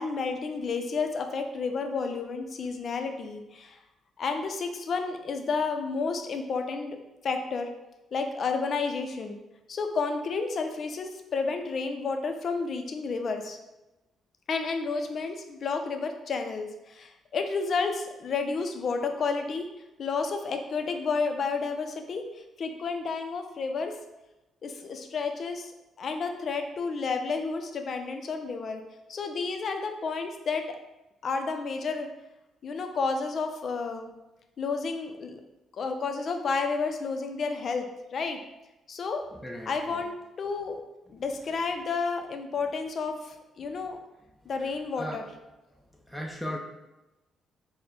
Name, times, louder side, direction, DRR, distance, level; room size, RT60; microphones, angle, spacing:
voice 1, 0.0-3.8 4.2-7.0 7.2-7.7 8.1-9.4 9.7-13.6 14.5-19.7 20.0-24.0 24.6-25.7 26.0-28.8 29.1-30.8 31.2-32.1 32.6-34.1 34.6-35.4 35.7-38.4 38.9-39.3 39.7-40.8 41.1-44.0 44.5-45.3, left 4 dB, 55° left, 5 dB, 0.5 m, -31 dB
voice 2, 39.3-40.0 45.0-45.2 46.1-46.6, equal, ahead, -2 dB, 0.6 m, -37 dB
4.2 x 2.1 x 4.0 m, 1.0 s
cardioid pair, 90°, 0 cm